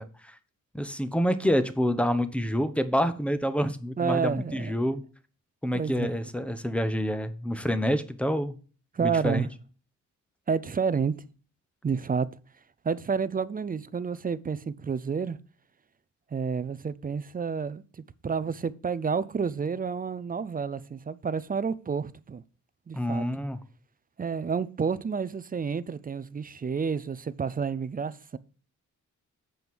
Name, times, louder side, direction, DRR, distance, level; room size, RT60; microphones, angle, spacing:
voice 1, 0.7-5.0 5.6-8.5 9.0-9.5 22.9-23.6, equal, 5° left, 1.0 m, -27 dB
voice 2, 4.0-4.8 5.7-6.2 8.9-9.5 10.5-11.1 11.8-12.3 12.8-15.4 16.3-22.4 22.9-23.2 24.2-28.4, right 6 dB, 25° right, 0.5 m, -30 dB
7.7 x 5.3 x 6.1 m
cardioid pair, 95°, 32 cm